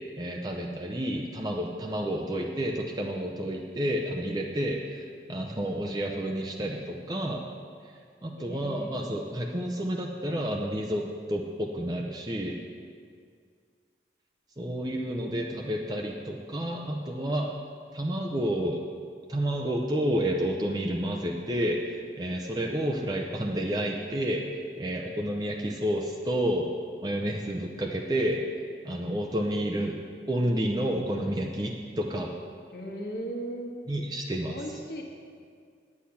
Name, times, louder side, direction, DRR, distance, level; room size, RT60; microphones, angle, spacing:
voice 1, 0.2-7.4 8.2-11.0 11.3-12.6 14.6-17.5 17.9-18.8 19.3-26.7 27.0-28.4 28.8-30.0 30.3-32.3 33.9-34.6, equal, 20° right, 0 dB, 0.6 m, -30 dB
voice 2, 8.4-9.0 32.7-33.7 34.5-35.0, right 1 dB, 60° left, 1 dB, 1.4 m, -37 dB
9.7 x 8.6 x 5.7 m, 2.1 s
head